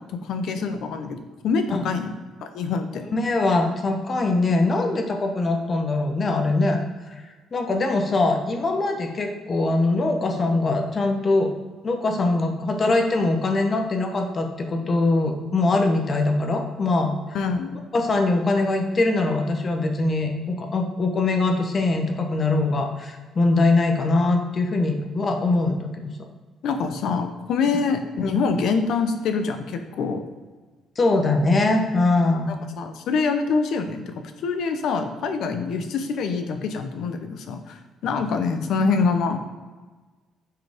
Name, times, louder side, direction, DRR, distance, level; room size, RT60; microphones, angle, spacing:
voice 1, 0.2-2.1 2.4-3.1 17.3-17.8 26.6-30.2 32.3-39.4, left 4 dB, 60° left, 7 dB, 0.8 m, -25 dB
voice 2, 3.1-6.8 7.1-11.5 11.8-17.1 17.9-26.1 31.0-32.5, left 2 dB, 25° left, 4 dB, 0.8 m, -22 dB
9.4 x 4.8 x 3.5 m, 1.3 s
cardioid pair, 180°, 0 cm